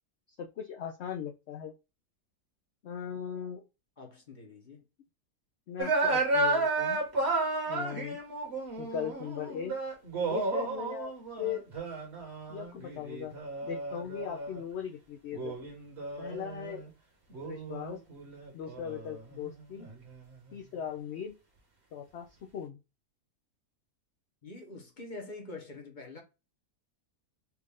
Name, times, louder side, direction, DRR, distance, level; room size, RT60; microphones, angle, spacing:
voice 1, 0.4-1.7 2.8-3.6 5.7-7.0 7.7-8.2 8.8-9.8 10.2-11.6 12.5-13.4 13.6-15.6 16.2-16.9 17.4-18.0 18.5-19.9 20.5-21.3 21.9-22.8, left 8 dB, 70° left, 0.6 m, -39 dB
voice 2, 4.0-4.8 24.4-26.2, left 2 dB, 35° left, 1.0 m, -45 dB
sound 1, 5.8-14.6 15.3-16.9 17.3-20.2, right 3 dB, 40° right, 1.6 m, -33 dB
4.4 x 2.5 x 3.5 m
omnidirectional pair, 1.7 m